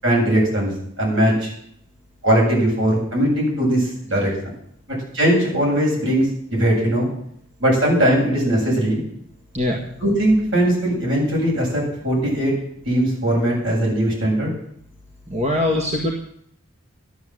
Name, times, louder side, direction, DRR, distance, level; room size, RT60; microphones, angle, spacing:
voice 1, 0.0-0.7 1.0-1.5 2.2-4.3 5.1-7.1 7.6-9.0 10.0-12.5 12.8-14.5, right 1 dB, 60° right, -2 dB, 7.9 m, -19 dB
voice 2, 15.3-16.1, left 1 dB, 30° right, 0 dB, 1.8 m, -21 dB
12.5 x 12.5 x 7.8 m, 0.70 s
head